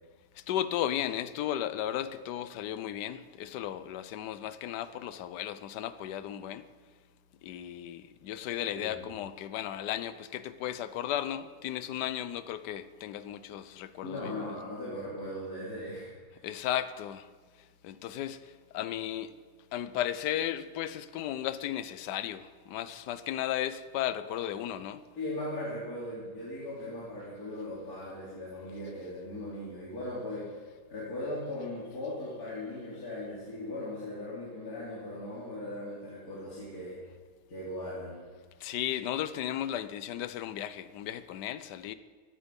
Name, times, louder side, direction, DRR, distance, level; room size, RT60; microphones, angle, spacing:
voice 1, 0.4-6.6 7.4-14.6 16.4-17.3 17.8-19.3 19.7-25.0 38.6-41.9, left 11 dB, 75° left, 1.3 m, -35 dB
voice 2, 8.4-9.0 14.0-16.5 25.2-30.6 30.9-37.0 37.5-38.2, left 1 dB, 55° left, 3.6 m, -38 dB
16.0 x 12.0 x 5.4 m
omnidirectional pair, 1.9 m